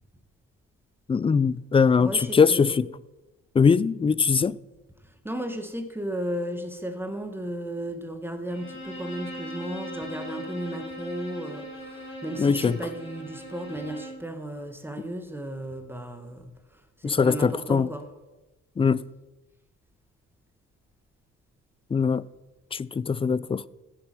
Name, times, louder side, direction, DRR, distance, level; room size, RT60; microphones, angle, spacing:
voice 1, 1.1-2.9 3.6-4.6 12.4-12.8 17.0-17.9 18.8-19.0 21.9-22.2 22.7-23.6, left 5 dB, 20° left, 0.3 m, -21 dB
voice 2, 2.0-2.7 5.2-16.5 17.0-18.1, right 1 dB, 5° right, 1.6 m, -34 dB
Bowed string instrument, 8.5-14.3, equal, 40° left, 5.0 m, -39 dB
14.5 x 7.6 x 6.1 m
cardioid pair, 90°, 30 cm